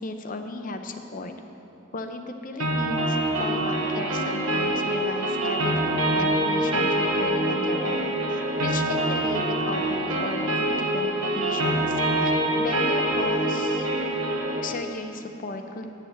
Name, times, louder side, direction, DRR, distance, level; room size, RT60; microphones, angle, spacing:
voice 1, 0.0-1.3 1.9-10.7 10.9-13.9 14.6-16.0, left 2 dB, 40° left, 6 dB, 0.6 m, -35 dB
sound 1, 2.6-14.6, right 1 dB, 80° right, 1.1 m, -25 dB
8.5 x 6.7 x 7.0 m, 2.9 s
head